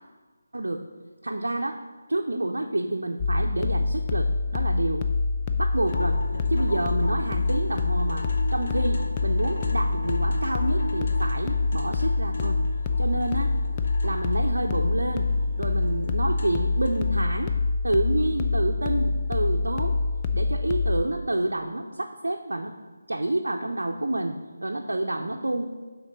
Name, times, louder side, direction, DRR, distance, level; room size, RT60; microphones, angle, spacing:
voice 1, 1.2-1.8 2.1-5.1 5.6-6.2 6.5-12.6 13.0-13.5 14.0-15.3 15.6-17.5 17.8-19.9 20.3-22.7 23.1-24.4 24.6-25.6, right 1 dB, 75° right, 3 dB, 0.5 m, -28 dB
sound 1, 3.2-21.0, left 3 dB, 20° left, 0.4 m, -26 dB
sound 2, 5.7-17.2, left 1 dB, 50° left, 0.9 m, -38 dB
7.1 x 3.9 x 5.1 m, 1.4 s
figure-of-eight pair, 160°, 0 cm